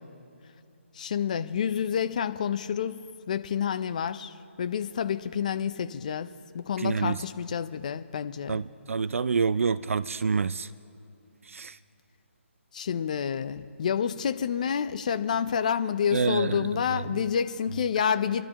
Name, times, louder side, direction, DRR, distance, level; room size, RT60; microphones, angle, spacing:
voice 1, 1.0-8.6 12.7-18.4, left 7 dB, 35° left, 0.4 m, -29 dB
voice 2, 6.8-7.2 8.5-10.7 11.5-11.8 16.1-17.0, right 5 dB, 80° right, 0.4 m, -27 dB
27.0 x 12.0 x 2.9 m
hypercardioid pair, 170°, 7 cm